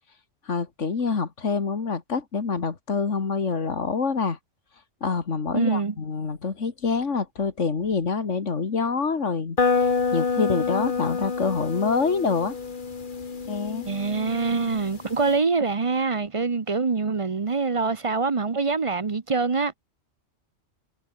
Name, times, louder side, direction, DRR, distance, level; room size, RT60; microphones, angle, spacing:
voice 1, 0.5-4.4 5.0-12.6 13.5-13.9, left 5 dB, 75° left, 2.3 m, -26 dB
voice 2, 5.5-5.9 13.9-19.7, right 4 dB, 30° right, 0.7 m, -24 dB
sound 1, 9.6-15.3, left 5 dB, 40° left, 1.5 m, -28 dB
omnidirectional pair, 1.3 m